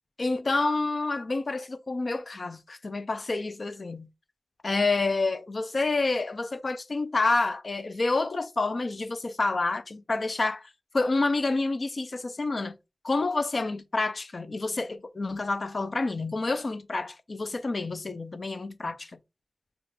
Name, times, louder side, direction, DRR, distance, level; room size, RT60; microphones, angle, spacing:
voice 1, 0.2-4.1 4.6-12.8 13.0-19.2, left 3 dB, 65° left, 0.3 m, -28 dB
5.9 x 2.4 x 2.3 m
wide cardioid pair, 75°, 0 cm